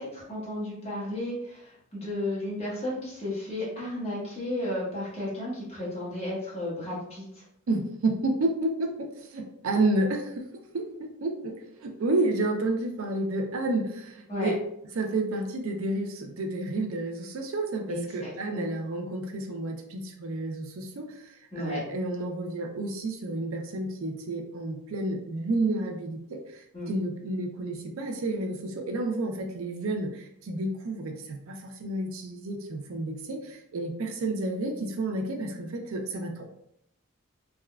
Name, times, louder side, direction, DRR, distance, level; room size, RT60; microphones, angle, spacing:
voice 1, 0.0-7.4 14.3-14.5 17.9-18.7 21.5-21.8 26.7-26.9, left 1 dB, 30° left, -7 dB, 1.1 m, -33 dB
voice 2, 7.7-10.5 10.7-14.6 14.9-36.4, right 2 dB, 75° right, 3 dB, 0.4 m, -30 dB
3.5 x 2.2 x 2.2 m, 0.74 s
head